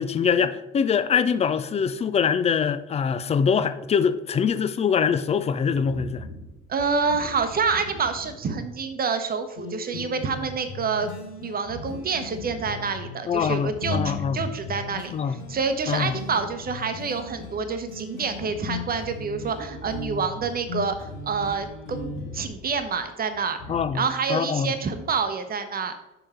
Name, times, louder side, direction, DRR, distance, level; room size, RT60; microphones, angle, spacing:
voice 1, 0.0-6.2 13.3-14.4 15.1-15.4 15.9-16.1 23.7-24.0 24.3-24.7, left 6 dB, 20° left, 0.4 m, -23 dB
sound 1, 5.8-8.9 9.4-9.5 9.9-10.2 11.6-13.0 13.3-15.0 15.3-24.0, left 1 dB, 75° left, 1.4 m, -43 dB
voice 2, 6.7-11.1 11.4-23.6 23.9-25.9, right 5 dB, 25° right, 1.0 m, -27 dB
sound 2, 9.6-22.5, left 3 dB, 60° left, 1.3 m, -37 dB
6.7 x 5.9 x 4.3 m
figure-of-eight pair, 60°, 37 cm